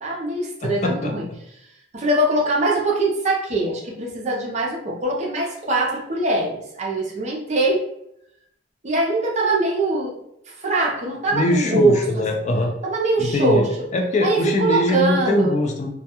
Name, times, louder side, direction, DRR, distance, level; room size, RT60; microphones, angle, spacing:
voice 1, 0.0-1.2 1.9-7.8 8.8-10.2 10.6-12.0 12.8-13.6 14.2-15.5, right 2 dB, 35° right, -2 dB, 0.6 m, -22 dB
voice 2, 0.6-1.4 11.3-12.7 13.2-13.6 13.9-15.9, left 2 dB, 35° left, 2 dB, 0.4 m, -22 dB
2.2 x 2.2 x 2.8 m, 0.77 s
head